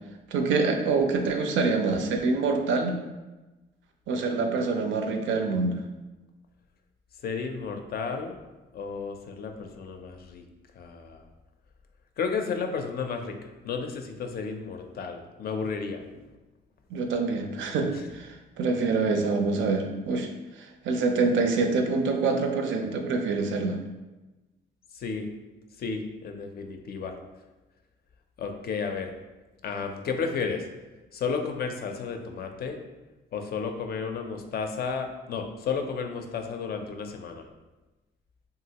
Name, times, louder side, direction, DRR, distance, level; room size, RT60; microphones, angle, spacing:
voice 1, 0.3-3.0 4.1-5.8 16.9-20.3 20.6-23.8, right 4 dB, 75° right, 4 dB, 0.5 m, -26 dB
voice 2, 7.2-8.4 8.7-10.4 10.8-11.2 12.2-16.0 24.9-25.3 25.8-27.1 28.4-29.1 29.6-30.6 31.1-32.8 33.3-37.5, left 5 dB, 50° left, 5 dB, 0.4 m, -32 dB
2.9 x 2.4 x 2.8 m, 1.1 s
cardioid pair, 90°, 20 cm